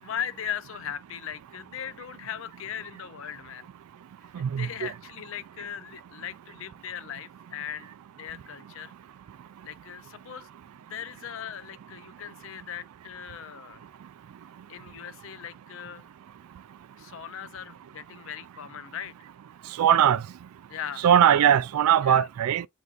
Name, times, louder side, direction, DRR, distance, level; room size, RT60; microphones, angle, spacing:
voice 1, 0.0-3.7 4.3-7.9 8.2-8.9 9.6-13.8 14.7-16.1 17.0-19.1 20.7-21.1 22.0-22.3, left 9 dB, 65° left, 0.4 m, -39 dB
voice 2, 4.3-4.9 19.8-20.2 21.0-22.7, right 9 dB, 85° right, 0.3 m, -20 dB
8.0 x 2.7 x 2.4 m
head